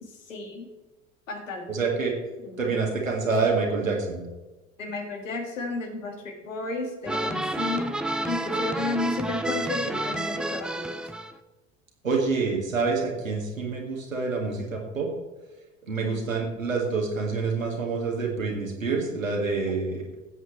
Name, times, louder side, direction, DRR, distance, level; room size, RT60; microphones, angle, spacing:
voice 1, 0.0-0.7 1.3-1.7 2.4-2.7 4.8-8.0 8.2-11.0 16.0-16.3, left 3 dB, 75° left, 3 dB, 1.8 m, -33 dB
voice 2, 1.7-2.1 2.6-4.2 12.0-15.1 15.9-20.0, right 4 dB, 85° right, 0 dB, 1.9 m, -27 dB
sound 1, 7.1-11.3, right 1 dB, ahead, 0.3 m, -30 dB
16.0 x 7.9 x 3.1 m, 1.1 s
figure-of-eight pair, 65°, 39 cm